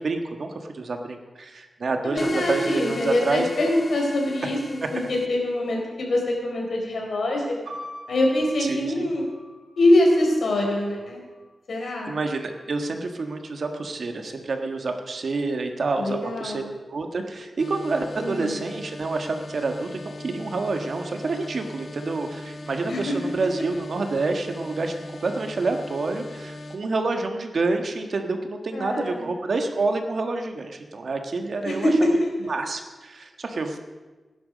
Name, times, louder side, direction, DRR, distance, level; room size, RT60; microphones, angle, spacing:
voice 1, 0.0-3.5 4.4-4.5 4.8-4.9 8.6-9.1 11.8-16.6 16.9-24.9 25.2-31.9 32.4-33.8, right 3 dB, 60° right, 5 dB, 1.5 m, -28 dB
voice 2, 2.0-7.6 8.1-9.2 9.8-11.2 11.7-12.2 15.9-16.7 18.1-18.6 22.9-23.2 28.7-29.3 31.6-32.3, left 1 dB, 75° left, 0 dB, 4.2 m, -24 dB
sound 1, 2.2-5.3, left 2 dB, 30° left, 0.7 m, -38 dB
sound 2, 7.6-11.5 12.3-13.0, equal, 85° right, 1.9 m, -44 dB
sound 3, 17.6-26.8, left 2 dB, 55° left, 1.6 m, -39 dB
18.5 x 10.5 x 5.2 m, 1.3 s
wide cardioid pair, 145°, 0 cm